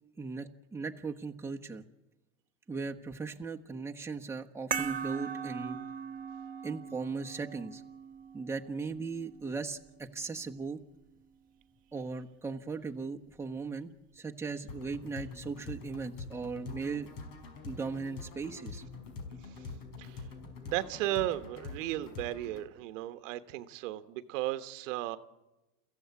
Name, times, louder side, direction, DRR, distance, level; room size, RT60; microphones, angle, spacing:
voice 1, 0.2-1.8 2.7-5.8 6.6-7.8 8.3-10.8 11.9-17.1 17.6-18.8, right 4 dB, 5° right, 1 dB, 1.2 m, -38 dB
sound 1, 4.7-9.8, right 7 dB, 20° right, 1.3 m, -40 dB
sound 2, 14.7-22.7, left 4 dB, 70° left, 5.5 m, -45 dB
voice 2, 19.4-19.7 20.0-20.3 20.6-25.2, right 15 dB, 85° right, 10 dB, 1.4 m, -35 dB
29.5 x 15.0 x 8.4 m, 1.0 s
supercardioid pair, 130°, 37 cm